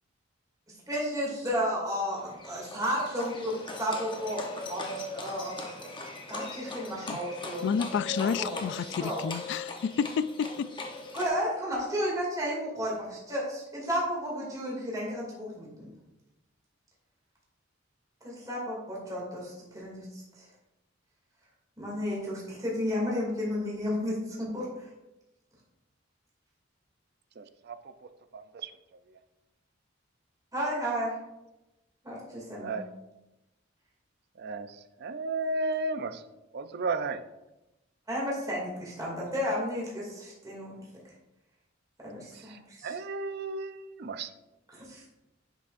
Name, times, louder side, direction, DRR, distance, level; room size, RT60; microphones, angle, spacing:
voice 1, 0.9-5.9 6.3-7.6 8.2-9.3 11.1-15.9 18.2-20.5 21.8-24.9 30.5-31.2 32.0-32.8 38.1-40.8 42.0-43.0 44.7-45.0, equal, 20° right, -5 dB, 2.4 m, -33 dB
Livestock farm animals working animals, 2.1-11.3, left 2 dB, 25° left, 0.9 m, -40 dB
voice 2, 7.6-10.7, left 6 dB, 60° left, 16 dB, 0.3 m, -30 dB
voice 3, 27.4-27.8 28.0-28.7 29.1-29.2 32.6-32.8 34.4-36.2 36.5-37.2 42.3-44.3, right 3 dB, 55° right, 10 dB, 0.5 m, -34 dB
10.0 x 6.0 x 2.6 m, 0.97 s
head